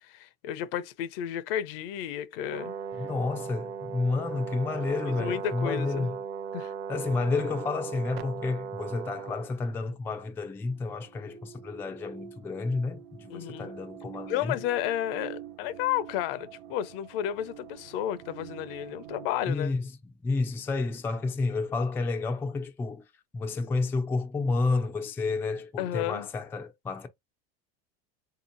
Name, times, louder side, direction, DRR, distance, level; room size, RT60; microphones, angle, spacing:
voice 1, 0.0-2.7 5.2-6.1 6.5-6.7 13.3-13.7 14.3-19.7 25.8-26.3, left 11 dB, 65° left, 0.6 m, -32 dB
Brass instrument, 2.5-9.5, right 6 dB, 40° right, 0.8 m, -37 dB
voice 2, 3.0-6.2 6.9-14.6 19.5-19.8 20.2-23.0 23.3-27.1, left 3 dB, 10° left, 0.3 m, -30 dB
sound 1, 8.1-8.2 10.1-19.3, right 10 dB, 90° right, 0.6 m, -46 dB
3.7 x 2.9 x 2.5 m
supercardioid pair, 140°, 30 cm